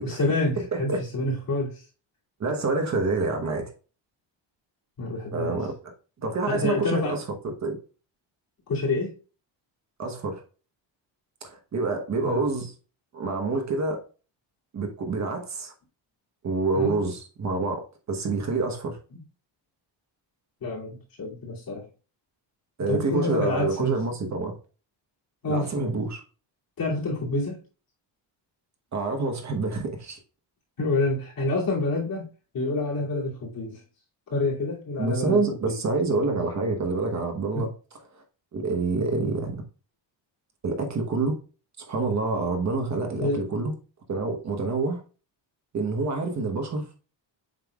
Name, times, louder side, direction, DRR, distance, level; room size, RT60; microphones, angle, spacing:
voice 1, 0.0-1.9 5.0-5.6 6.5-7.2 8.7-9.1 12.2-12.4 16.7-17.0 20.6-21.9 22.9-24.0 25.4-25.9 26.8-27.6 30.8-33.8 34.3-35.8 37.5-37.7 43.2-43.5, left 2 dB, 50° left, 2.7 m, -28 dB
voice 2, 0.6-1.0 2.4-3.7 5.3-5.9 6.2-7.8 10.0-10.4 11.4-12.7 13.1-14.0 14.7-15.7 16.4-19.0 22.8-24.5 25.5-26.2 28.9-30.2 35.0-37.7 38.1-38.2 38.5-39.6 40.6-41.3 41.8-43.7 44.1-45.0 45.7-46.9, right 3 dB, 35° right, 1.1 m, -27 dB
7.6 x 5.4 x 2.3 m
cardioid pair, 175°, 46 cm